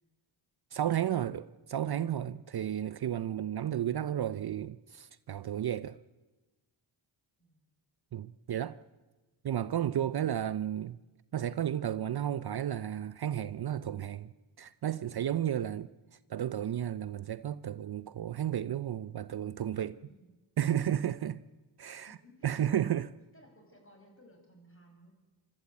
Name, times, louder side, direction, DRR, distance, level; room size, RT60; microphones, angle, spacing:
voice 1, 0.7-6.0 8.1-8.8 9.4-11.0 11.3-15.9 16.3-20.0 20.6-21.4 21.8-22.1 22.4-23.1, right 10 dB, 50° right, 0.6 m, -33 dB
voice 2, 7.4-7.7 20.0-20.3 21.9-23.0 23.3-25.1, equal, 25° left, 6.6 m, -60 dB
24.5 x 13.0 x 8.3 m
cardioid pair, 45°, 49 cm